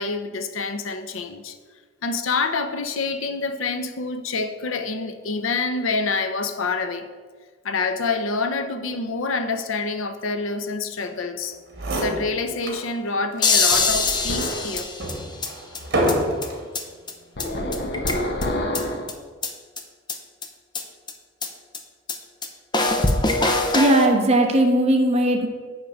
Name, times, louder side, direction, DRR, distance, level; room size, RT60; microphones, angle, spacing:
voice 1, 0.0-1.6 2.0-7.1 7.6-11.6 12.0-14.9, left 4 dB, 85° left, 0.7 m, -27 dB
sound 1, 11.4-11.5 11.7-12.9 13.3-13.4 14.1-16.7 17.4-17.8, right 1 dB, 60° right, 2.2 m, -27 dB
sound 2, 13.4-15.5 15.7-15.8 16.1-16.2 16.4-16.5 16.7-16.8 17.1-17.2 17.4-17.5 17.7-18.4 18.7-18.8 19.1-19.2 19.4-19.5 19.8-19.9 20.1-20.2 20.4-20.5 20.7-20.8 21.1-21.2 21.4-21.5 21.7-21.8 22.1-22.2 22.4-22.5 22.7-24.1, left 3 dB, 25° left, 0.8 m, -22 dB
sound 3, 13.7-14.8 17.4-19.1, left 1 dB, 55° left, 1.1 m, -28 dB
voice 2, 23.7-25.5, right 1 dB, 35° right, 1.1 m, -18 dB
10.0 x 3.7 x 7.2 m
head